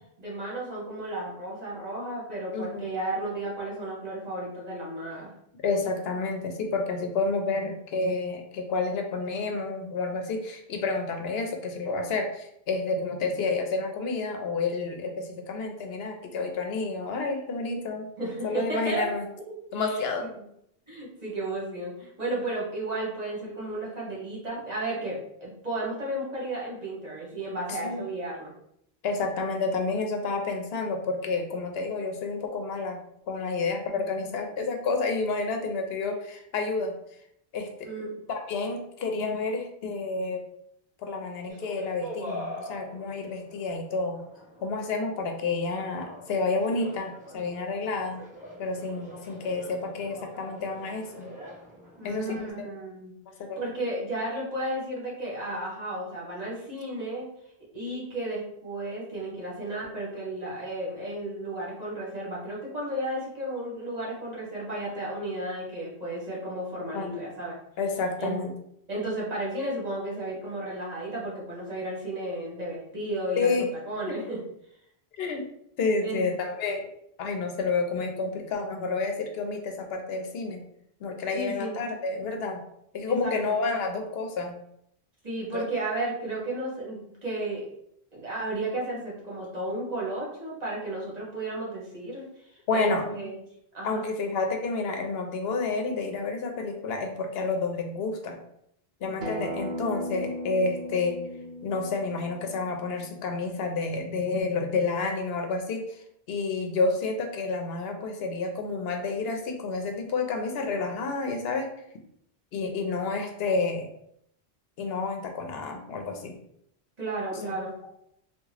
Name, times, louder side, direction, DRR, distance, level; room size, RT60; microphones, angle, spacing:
voice 1, 0.2-5.3 18.2-19.1 19.5-20.0 20.4-20.5 20.9-28.5 37.8-38.0 52.0-53.1 53.6-57.3 57.7-67.5 68.2-68.4 68.9-73.5 73.9-74.4 76.0-76.2 81.3-81.8 83.1-83.5 85.2-87.6 88.1-93.4 93.7-94.0 117.0-117.7, right 1 dB, 40° right, -5 dB, 1.2 m, -33 dB
voice 2, 2.5-2.9 5.6-18.1 18.4-19.2 19.7-20.3 27.7-28.0 29.0-33.0 33.3-36.9 37.5-37.9 38.3-40.4 41.0-44.2 44.6-48.2 48.6-51.3 52.0-52.7 53.4-53.6 66.9-67.1 67.8-68.5 73.4-73.7 74.1-74.2 75.2-75.5 75.8-76.9 77.2-80.6 81.0-82.6 82.9-84.6 85.5-85.7 92.7-93.3 93.8-98.4 99.0-101.2 101.6-105.9 106.3-111.7 112.5-113.9 114.8-116.4 117.4-117.6, left 3 dB, 75° left, 4 dB, 0.8 m, -30 dB
sound 1, 41.5-52.5, equal, 10° right, 1.2 m, -43 dB
Acoustic guitar, 99.2-104.4, equal, 60° right, 0.8 m, -38 dB
3.5 x 2.3 x 3.2 m, 0.73 s
omnidirectional pair, 1.0 m